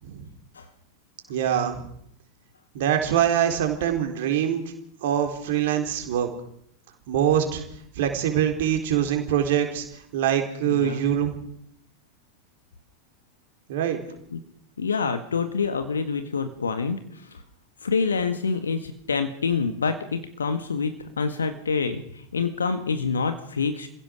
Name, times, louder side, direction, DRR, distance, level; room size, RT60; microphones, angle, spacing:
voice 1, 1.3-1.9 2.7-4.6 5.0-6.3 7.1-7.6 8.0-9.8 10.1-11.4 13.7-14.0, right 10 dB, 55° right, 4 dB, 4.1 m, -24 dB
voice 2, 10.7-11.0 14.3-14.4 14.8-17.4 17.8-23.9, left 5 dB, 70° left, 9 dB, 1.7 m, -27 dB
27.0 x 16.5 x 6.4 m, 0.70 s
figure-of-eight pair, 90°, 0 cm